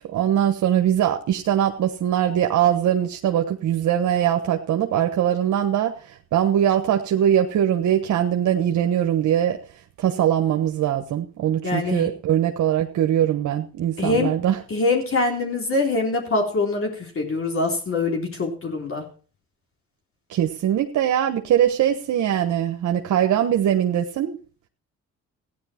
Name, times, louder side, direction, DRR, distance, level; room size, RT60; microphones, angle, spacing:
voice 1, 0.0-9.6 10.0-14.6 20.3-24.4, right 10 dB, 75° right, 1.3 m, -21 dB
voice 2, 11.6-12.1 14.0-14.3 14.7-19.0, left 3 dB, 45° left, 3.7 m, -24 dB
15.0 x 10.0 x 4.5 m
cardioid pair, 90°, 30 cm